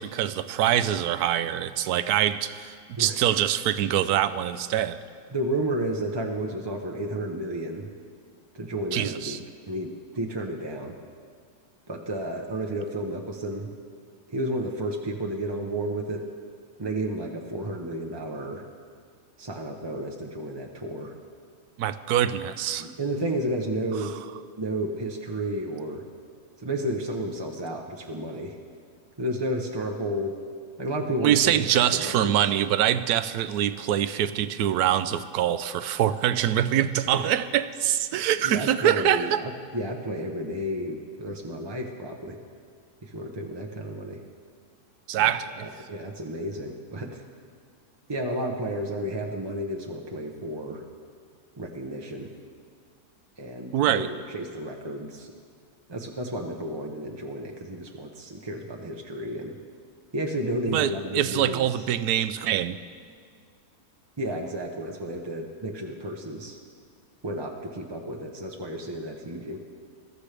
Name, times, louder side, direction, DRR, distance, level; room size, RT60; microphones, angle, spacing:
voice 1, 0.0-5.0 8.9-9.4 21.8-22.9 31.2-39.4 45.1-45.7 53.7-54.1 60.7-62.8, right 11 dB, 80° right, 12 dB, 1.1 m, -24 dB
voice 2, 5.3-7.9 8.5-9.4 9.7-11.0 11.9-13.7 14.3-16.2 16.8-18.6 19.4-21.1 22.8-24.2 24.6-26.0 26.6-28.6 29.2-30.4 30.8-32.4 37.0-37.3 38.4-42.4 43.0-44.2 45.2-45.3 45.6-47.2 48.1-50.8 51.6-52.3 53.4-55.3 55.9-59.6 60.1-61.7 64.2-66.6 67.2-69.6, right 1 dB, 25° right, 1 dB, 0.5 m, -32 dB
21.5 x 13.5 x 3.4 m, 2.1 s
omnidirectional pair, 1.7 m